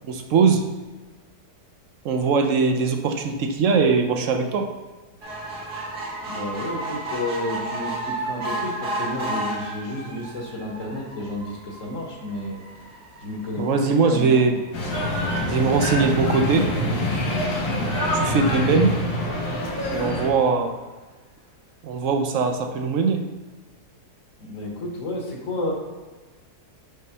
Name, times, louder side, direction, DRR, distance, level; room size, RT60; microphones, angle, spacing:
voice 1, 0.1-0.7 2.0-4.7 13.6-14.5 15.5-16.7 18.1-18.9 19.9-20.7 21.8-23.3, right 4 dB, 65° right, 5 dB, 0.9 m, -21 dB
sound 1, 5.2-17.8 18.4-18.5 18.8-18.9 19.1-19.2, right 1 dB, 80° right, 1.9 m, -34 dB
voice 2, 6.2-12.6 13.2-14.6 24.4-25.7, left 1 dB, 55° left, -1 dB, 1.4 m, -31 dB
sound 2, 14.7-20.3, left 1 dB, 85° left, 1.6 m, -25 dB
5.3 x 3.2 x 5.5 m, 1.3 s
omnidirectional pair, 1.7 m